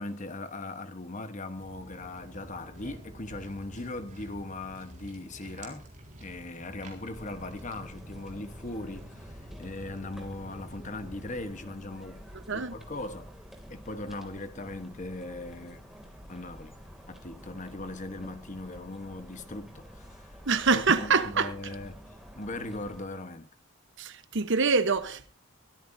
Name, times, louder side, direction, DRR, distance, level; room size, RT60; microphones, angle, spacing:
voice 1, 0.0-5.9 6.2-12.2 12.5-13.3 13.7-15.8 16.3-16.7 17.1-20.4 20.7-22.0 22.4-23.5, left 2 dB, 35° left, 1.1 m, -39 dB
Walk footsteps, 1.6-11.4, right 1 dB, 35° right, 3.9 m, -49 dB
sound 1, 7.1-23.1, equal, ahead, 2.5 m, -49 dB
voice 2, 20.5-21.5 24.0-25.3, right 4 dB, 55° right, 1.0 m, -25 dB
23.5 x 13.5 x 2.7 m
head